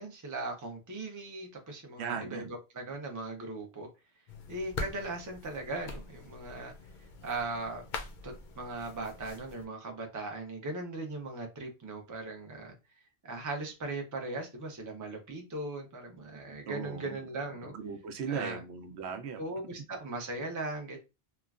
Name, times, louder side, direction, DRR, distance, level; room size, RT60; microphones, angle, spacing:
voice 1, 0.0-3.9 4.5-6.7 7.2-7.8 8.2-12.7 13.2-17.7 18.3-18.6 19.4-21.0, right 2 dB, 25° right, 0.4 m, -38 dB
voice 2, 2.0-2.5 16.7-17.2 17.6-19.4, right 6 dB, 85° right, 0.8 m, -37 dB
sound 1, 4.3-9.7, left 3 dB, 60° left, 0.6 m, -43 dB
3.1 x 2.2 x 2.3 m
omnidirectional pair, 1.1 m